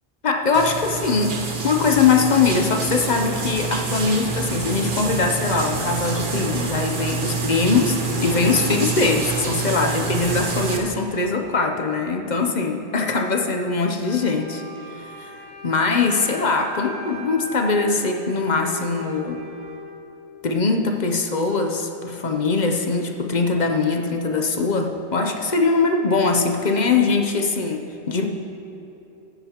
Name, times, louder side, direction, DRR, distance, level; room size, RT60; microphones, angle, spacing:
voice 1, 0.2-1.4 1.6-14.6 14.9-15.3 15.6-19.4 20.4-28.3, left 4 dB, 45° left, 3 dB, 0.7 m, -22 dB
sound 1, 0.5-10.8, right 4 dB, 50° right, 1.1 m, -27 dB
Wind instrument woodwind instrument, 14.0-19.9, left 1 dB, 10° left, 2.5 m, -38 dB
14.5 x 9.8 x 2.9 m, 2.9 s
omnidirectional pair, 1.1 m